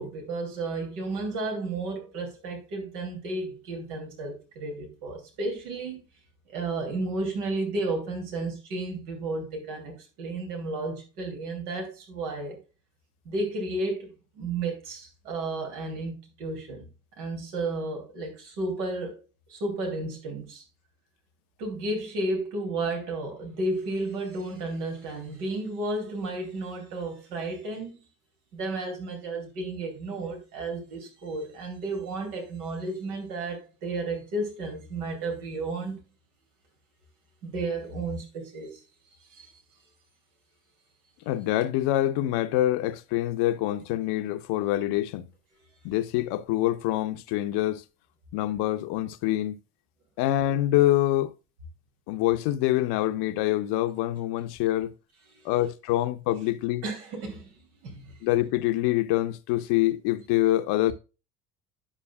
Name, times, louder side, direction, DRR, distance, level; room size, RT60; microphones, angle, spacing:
voice 1, 0.0-6.0 6.5-12.6 13.2-16.9 17.2-19.2 19.5-20.6 21.6-28.0 28.5-36.0 37.4-38.8 39.1-39.5 55.3-55.5 56.8-58.2, right 2 dB, 75° right, 2.9 m, -33 dB
voice 2, 41.3-45.3 45.8-47.8 48.3-49.6 50.2-51.3 52.1-54.9 55.4-56.8 58.2-60.9, left 14 dB, 60° left, 0.9 m, -25 dB
9.9 x 6.8 x 2.3 m
hypercardioid pair, 65°, 46 cm